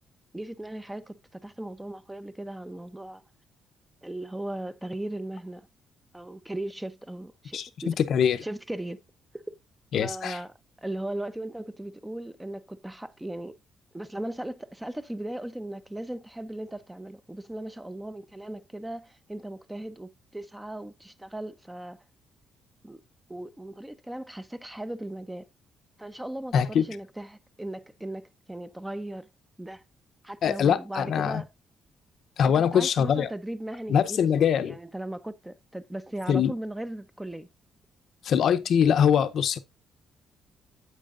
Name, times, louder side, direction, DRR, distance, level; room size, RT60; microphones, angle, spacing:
voice 1, 0.3-3.2 4.0-5.7 6.1-7.9 8.4-9.0 10.0-13.6 13.9-22.0 22.8-23.0 23.3-25.5 26.0-29.3 29.6-29.8 30.2-31.5 32.5-37.5, right 1 dB, 10° right, 0.8 m, -37 dB
voice 2, 7.5-8.4 9.9-10.4 26.5-26.8 30.4-31.4 32.4-33.3 33.9-34.8 36.3-36.5 38.2-39.6, left 8 dB, 65° left, 0.7 m, -23 dB
9.0 x 7.9 x 2.5 m
cardioid pair, 90°, 0 cm